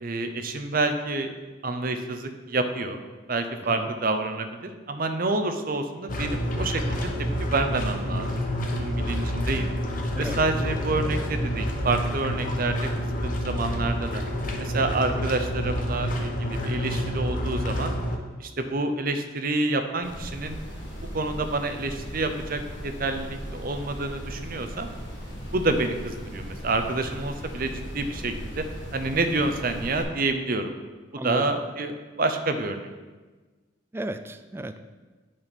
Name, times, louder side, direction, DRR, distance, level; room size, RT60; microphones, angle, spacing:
voice 1, 0.0-1.3 1.6-3.0 3.3-7.1 7.4-8.4 8.7-9.7 10.2-14.2 14.6-17.9 18.4-20.6 21.1-24.9 25.5-28.6 28.9-30.7 31.1-32.9, right 2 dB, 50° right, 7 dB, 0.7 m, -28 dB
sound 1, 6.1-18.2, equal, 45° left, 0.9 m, -28 dB
sound 2, 20.0-30.0, equal, 75° left, 1.8 m, -38 dB
voice 2, 33.9-34.8, right 1 dB, 10° right, 9 dB, 0.3 m, -34 dB
8.6 x 4.2 x 5.3 m, 1.3 s
head